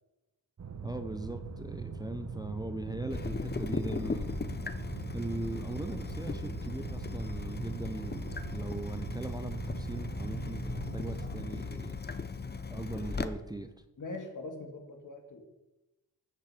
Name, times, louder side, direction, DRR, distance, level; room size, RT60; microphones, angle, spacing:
sound 1, 0.6-11.5, right 4 dB, 45° right, 1.1 m, -41 dB
voice 1, 0.8-4.4 5.1-12.0 12.7-13.7, right 2 dB, 10° right, 8 dB, 0.7 m, -40 dB
Water tap faucet / Drip, 3.1-13.3, left 4 dB, 25° left, 0.8 m, -38 dB
voice 2, 14.0-15.5, left 2 dB, 55° left, 4 dB, 2.4 m, -42 dB
14.0 x 9.0 x 5.0 m, 1.0 s
wide cardioid pair, 85°, 38 cm